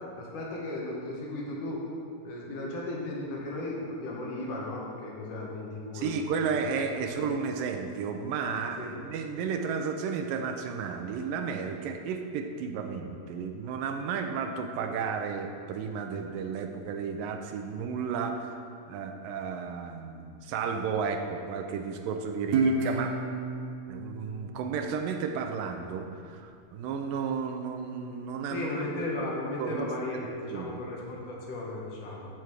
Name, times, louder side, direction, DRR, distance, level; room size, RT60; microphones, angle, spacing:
voice 1, 0.2-1.9 2.2-6.2 6.9-7.3 8.8-9.0 28.5-32.3, left 2 dB, 65° left, -3 dB, 3.0 m, -36 dB
voice 2, 5.9-18.5 18.9-23.2 23.9-29.0 29.6-29.9 30.1-30.8, right 6 dB, 85° right, 5 dB, 2.4 m, -33 dB
Guitar, 22.5-25.7, right 3 dB, 65° right, 2.2 m, -31 dB
14.0 x 5.8 x 4.8 m, 2.4 s
omnidirectional pair, 4.0 m